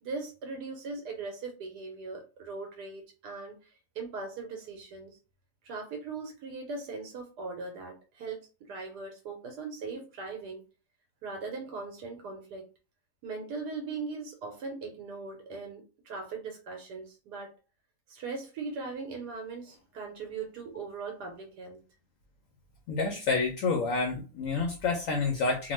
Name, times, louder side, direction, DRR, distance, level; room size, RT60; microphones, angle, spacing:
voice 1, 0.0-3.5 3.9-5.2 5.6-10.6 11.2-12.7 13.2-17.5 18.1-21.8, right 4 dB, 80° right, 1.2 m, -39 dB
voice 2, 22.9-25.7, left 4 dB, 70° left, 0.8 m, -28 dB
2.8 x 2.1 x 3.0 m
omnidirectional pair, 1.8 m